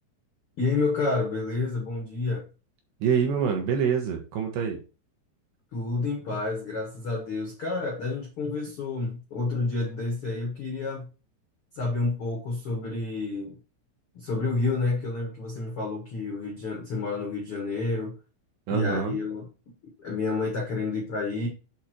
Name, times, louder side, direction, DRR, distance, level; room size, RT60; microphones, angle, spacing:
voice 1, 0.6-2.4 5.7-11.1 11.7-13.6 14.1-18.1 18.7-19.5 20.0-21.5, left 3 dB, 60° left, 1.4 m, -29 dB
voice 2, 3.0-4.8 18.7-19.2, right 7 dB, 70° right, 3.1 m, -26 dB
8.6 x 3.7 x 4.5 m
omnidirectional pair, 5.6 m